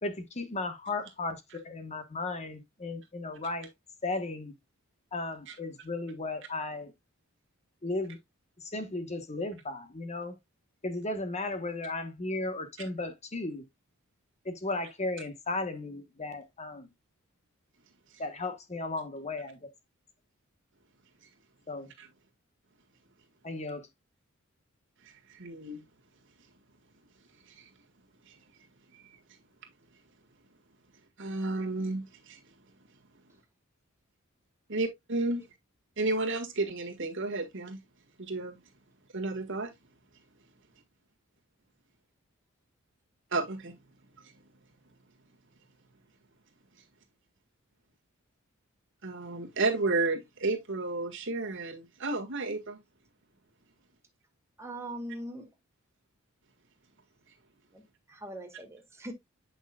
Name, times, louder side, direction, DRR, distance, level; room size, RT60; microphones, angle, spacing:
voice 1, 0.0-3.7 4.0-4.5 5.1-6.9 7.8-8.2 8.6-10.3 10.8-13.6 14.4-16.9 18.2-19.6 21.7-21.9 23.4-23.9, left 2 dB, 35° left, 1.2 m, -35 dB
voice 2, 25.0-25.8 27.4-27.7 28.2-28.4 28.9-29.2 31.2-32.4 34.7-35.4 36.0-37.8 38.2-38.6 39.1-39.7 43.3-43.7 49.0-52.8, right 2 dB, 60° right, 1.7 m, -32 dB
voice 3, 54.6-55.5 57.7-57.8 58.1-59.1, right 1 dB, 15° right, 1.6 m, -41 dB
8.2 x 6.0 x 2.3 m
head